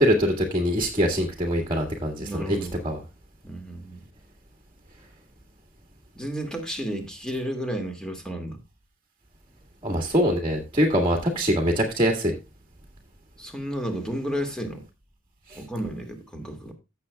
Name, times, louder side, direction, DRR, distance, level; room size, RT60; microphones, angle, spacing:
voice 1, 0.0-2.6 2.8-3.0 9.8-12.4 15.5-15.6, equal, 25° right, 1.8 m, -23 dB
voice 2, 2.2-2.8 3.4-4.0 6.1-8.6 13.4-14.8 15.6-16.7, equal, 5° left, 2.2 m, -32 dB
16.0 x 6.9 x 2.3 m
head